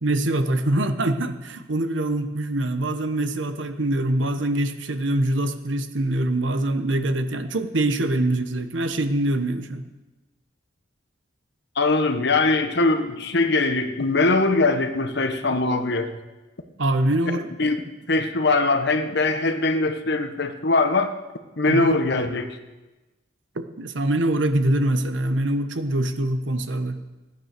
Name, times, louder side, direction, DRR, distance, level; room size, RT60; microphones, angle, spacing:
voice 1, 0.0-9.8 16.8-17.5 21.7-22.0 23.5-27.0, right 1 dB, 75° right, 9 dB, 1.1 m, -24 dB
voice 2, 11.8-16.1 17.6-17.8 18.1-21.1 21.6-22.5, left 3 dB, 60° left, 8 dB, 1.2 m, -21 dB
15.0 x 9.8 x 6.7 m, 1.1 s
head